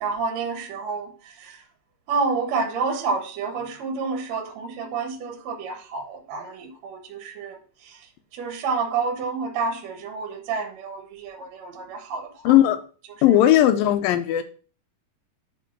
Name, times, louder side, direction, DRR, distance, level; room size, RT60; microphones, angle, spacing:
voice 1, 0.0-1.1 1.4-1.6 2.1-7.6 7.8-8.0 8.3-12.5, right 4 dB, 60° right, 2.1 m, -29 dB
voice 2, 12.4-12.8 13.2-14.4, left 12 dB, 80° left, 2.4 m, -17 dB
7.3 x 4.6 x 5.9 m
omnidirectional pair, 4.1 m